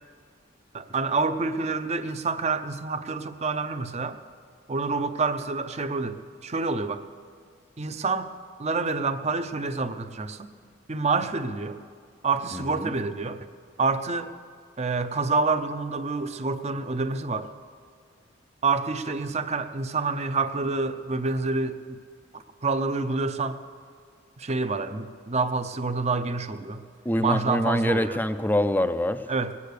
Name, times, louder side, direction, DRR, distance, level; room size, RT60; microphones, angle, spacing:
voice 1, 0.7-4.2 4.7-7.0 7.8-8.3 8.6-10.5 10.9-11.8 12.2-13.5 13.8-14.3 14.8-17.5 18.6-22.0 22.3-23.6 24.4-26.8 27.2-28.2 29.3-29.5, right 4 dB, 35° right, 10 dB, 0.6 m, -27 dB
voice 2, 12.5-12.9 27.0-29.3, left 1 dB, 10° left, 10 dB, 0.4 m, -25 dB
20.5 x 8.4 x 6.6 m, 2.1 s
head